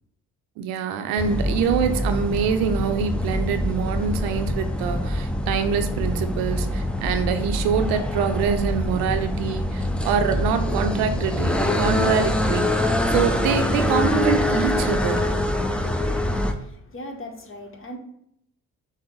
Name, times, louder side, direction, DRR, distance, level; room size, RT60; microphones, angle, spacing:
voice 1, 0.6-15.3, right 7 dB, 85° right, 0.6 m, -25 dB
sound 1, 1.2-16.5, left 1 dB, 5° left, 0.5 m, -24 dB
voice 2, 16.5-18.0, left 1 dB, 35° left, 0.9 m, -39 dB
6.0 x 2.1 x 3.7 m
supercardioid pair, 55°, 35 cm